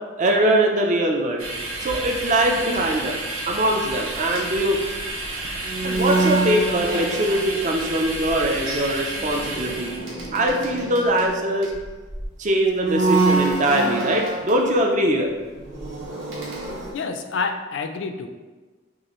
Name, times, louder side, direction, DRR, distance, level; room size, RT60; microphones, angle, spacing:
voice 1, 0.2-1.5 1.8-3.2 3.5-4.8 5.8-10.0 10.3-11.7 12.4-15.3, right 1 dB, 35° right, 2 dB, 0.4 m, -22 dB
sound 1, 1.4-10.0, right 2 dB, 90° right, 0.8 m, -31 dB
sound 2, 4.1-7.8 8.0-8.4 9.2-12.2 12.7-14.6 15.2-16.9, right 3 dB, 70° right, 1.3 m, -26 dB
voice 2, 16.9-18.3, left 4 dB, 60° left, 6 dB, 0.4 m, -28 dB
6.2 x 2.4 x 2.9 m, 1.3 s
head